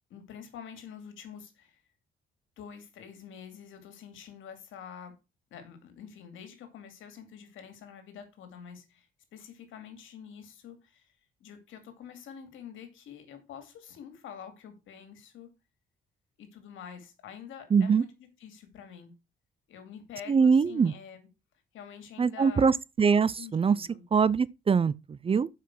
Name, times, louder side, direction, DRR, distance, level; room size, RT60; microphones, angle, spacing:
voice 1, 0.1-1.8 2.6-5.2 5.5-11.1 11.4-15.5 16.4-19.1 19.7-21.3 21.7-22.7 23.4-24.0, left 8 dB, 80° left, 2.4 m, -47 dB
voice 2, 17.7-18.0 20.3-20.9 22.2-25.5, right 5 dB, 30° right, 0.4 m, -23 dB
7.7 x 5.7 x 6.0 m
cardioid pair, 90°, 20 cm